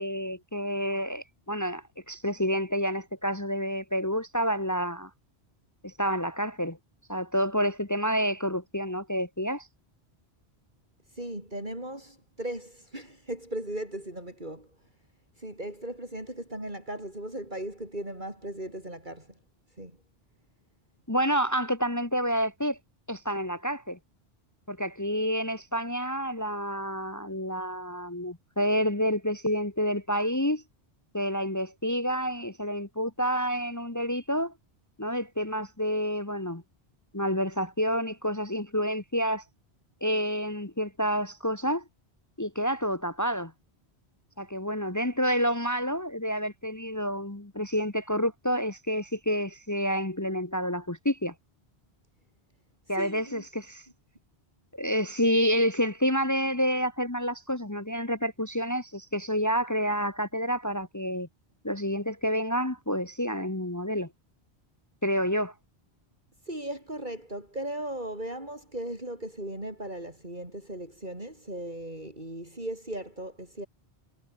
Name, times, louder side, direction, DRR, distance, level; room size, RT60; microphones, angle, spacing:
voice 1, 0.0-5.1 5.8-6.8 7.1-9.7 21.1-22.8 23.1-24.0 24.7-30.6 31.1-34.5 35.0-36.6 37.1-39.4 40.0-41.8 42.4-43.5 44.4-51.3 52.9-53.8 54.7-61.3 61.6-64.1 65.0-65.5, equal, 15° left, 1.6 m, -29 dB
voice 2, 11.1-14.8 15.4-19.4 19.7-20.0 52.9-53.4 66.4-73.7, right 1 dB, 45° right, 8.0 m, -37 dB
omnidirectional pair, 1.1 m